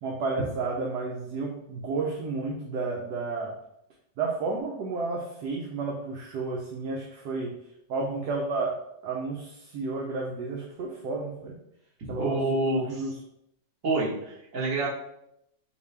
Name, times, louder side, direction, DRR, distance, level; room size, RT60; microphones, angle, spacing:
voice 1, 0.0-3.6 4.2-7.5 7.9-11.6 12.1-13.2, right 3 dB, 70° right, -1 dB, 1.1 m, -32 dB
voice 2, 12.2-13.0 13.8-14.9, right 2 dB, 50° right, -6 dB, 1.6 m, -27 dB
5.5 x 2.2 x 3.3 m, 0.79 s
omnidirectional pair, 1.9 m